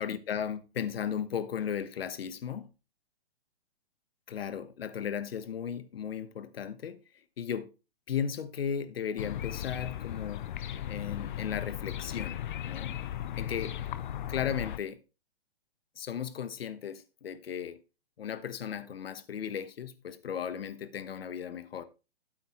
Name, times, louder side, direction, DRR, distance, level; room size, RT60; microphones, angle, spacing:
voice 1, 0.0-2.7 4.3-7.0 7.4-7.7 8.1-10.5 10.9-12.9 13.4-13.7 14.3-15.0 16.0-17.8 18.2-21.8, left 8 dB, 75° left, 1.3 m, -35 dB
sound 1, 9.2-14.8, left 11 dB, 55° left, 0.8 m, -37 dB
13.5 x 7.9 x 3.1 m
hypercardioid pair, 140°, 30 cm